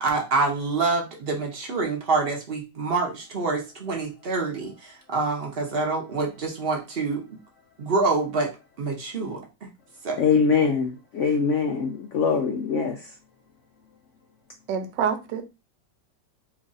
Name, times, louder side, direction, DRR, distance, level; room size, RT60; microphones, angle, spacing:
voice 1, 0.0-7.2 7.8-8.5 8.8-9.7 10.0-10.2, right 3 dB, 45° right, 0.8 m, -26 dB
voice 2, 10.2-13.1, left 5 dB, 85° left, 0.6 m, -23 dB
voice 3, 14.7-15.4, right 7 dB, 80° right, 1.2 m, -26 dB
3.1 x 2.4 x 3.9 m
omnidirectional pair, 1.9 m